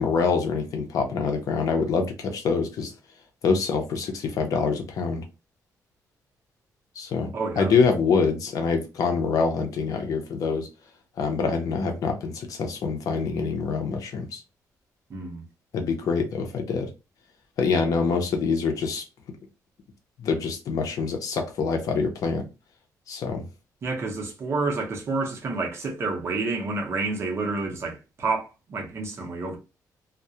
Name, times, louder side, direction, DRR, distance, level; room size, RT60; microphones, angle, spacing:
voice 1, 0.0-2.9 3.4-5.2 7.0-7.3 7.6-10.7 11.2-14.4 15.7-16.9 17.6-19.0 20.2-22.5 23.1-23.4, left 5 dB, 60° left, 0.6 m, -25 dB
voice 2, 7.3-7.8 15.1-15.4 23.8-29.6, right 3 dB, 40° right, 0.6 m, -29 dB
2.3 x 2.0 x 2.7 m
cardioid pair, 155°, 7 cm